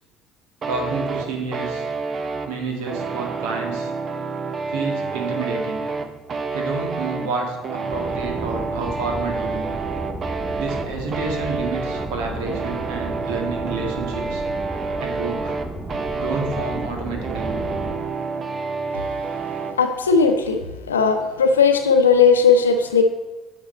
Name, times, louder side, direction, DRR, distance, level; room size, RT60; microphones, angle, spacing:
sound 1, 0.6-19.8, right 4 dB, 40° right, 0.8 m, -29 dB
voice 1, 0.7-1.9 2.5-3.9 4.7-5.8 6.5-9.7 10.6-14.4 15.0-15.6 16.1-17.6, right 4 dB, 70° right, 2 dB, 1.7 m, -29 dB
sound 2, 7.9-17.9, equal, 15° right, 3.0 m, -33 dB
voice 2, 19.8-20.6 20.9-23.0, left 5 dB, 85° left, 6 dB, 0.7 m, -16 dB
8.7 x 6.0 x 4.4 m, 1.2 s
hypercardioid pair, 55°, 0 cm